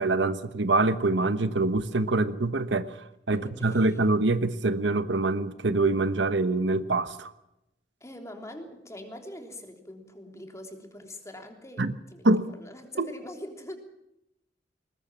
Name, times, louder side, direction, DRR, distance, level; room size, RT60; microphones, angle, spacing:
voice 1, 0.0-7.3 11.8-11.9 12.2-12.5 13.0-13.1, right 2 dB, 75° right, 12 dB, 1.1 m, -25 dB
voice 2, 3.3-4.0 8.0-13.8, left 1 dB, 15° left, 4 dB, 3.4 m, -43 dB
20.5 x 20.5 x 7.3 m, 0.86 s
head